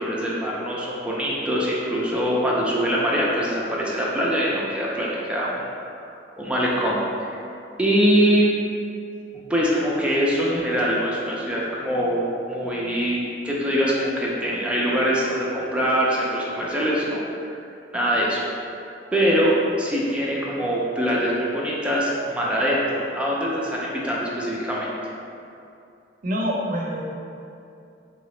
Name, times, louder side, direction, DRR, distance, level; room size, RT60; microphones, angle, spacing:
voice 1, 0.0-5.9 6.4-7.4 7.8-8.5 9.5-13.2 13.4-17.2 17.9-18.4 19.1-24.9, equal, 5° right, -5 dB, 0.5 m, -23 dB
voice 2, 26.2-27.0, equal, 50° right, -2 dB, 0.6 m, -25 dB
3.8 x 3.5 x 3.1 m, 2.6 s
head